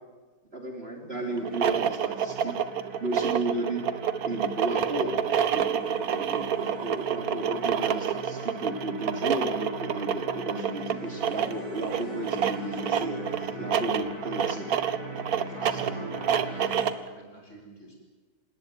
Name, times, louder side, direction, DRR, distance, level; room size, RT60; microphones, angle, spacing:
voice 1, 0.5-2.6 3.0-3.9 4.2-5.2 5.5-13.2 13.6-14.7 15.3-16.0, right 1 dB, 35° right, 2 dB, 3.3 m, -34 dB
sound 1, 1.1-16.9, right 3 dB, 90° right, 4.9 m, -41 dB
sound 2, 1.4-17.1, right 8 dB, 60° right, 1.4 m, -28 dB
sound 3, 9.4-11.9, left 2 dB, ahead, 7.4 m, -53 dB
voice 2, 13.3-14.2 15.5-17.9, right 2 dB, 40° left, 1 dB, 6.7 m, -46 dB
27.0 x 19.0 x 9.5 m, 1.4 s
omnidirectional pair, 1.9 m